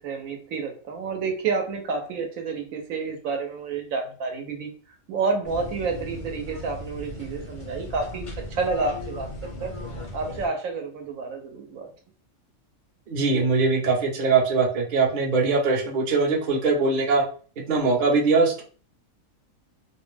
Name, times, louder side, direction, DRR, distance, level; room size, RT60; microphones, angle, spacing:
voice 1, 0.0-4.7 5.1-9.3 9.6-9.7 10.1-11.9, right 4 dB, 75° right, 4 dB, 1.0 m, -29 dB
sound 1, 5.4-10.5, left 1 dB, 60° left, 0.3 m, -37 dB
voice 2, 13.1-17.2 17.6-18.6, right 4 dB, 45° right, -1 dB, 0.6 m, -22 dB
2.5 x 2.1 x 3.2 m, 0.40 s
omnidirectional pair, 1.5 m